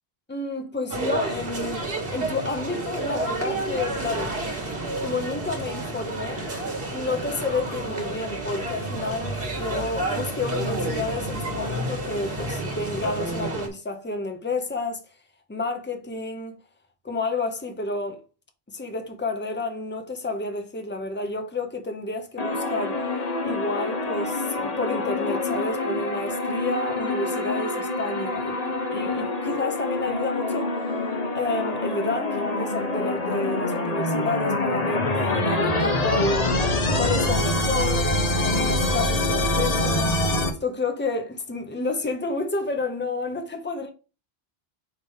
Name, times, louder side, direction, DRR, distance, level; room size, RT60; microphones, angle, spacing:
voice 1, 0.3-4.3 5.0-6.5 6.9-15.0 15.5-16.6 17.0-18.2 18.7-23.0 23.4-28.6 28.9-30.7 31.3-36.5 37.0-38.1 38.4-40.2 40.6-43.9, left 3 dB, 10° left, 0.8 m, -30 dB
sound 1, 0.9-13.7, right 2 dB, 65° right, 1.8 m, -30 dB
sound 2, 22.4-40.5, left 2 dB, 40° left, 1.0 m, -25 dB
5.0 x 3.5 x 5.4 m
omnidirectional pair, 1.0 m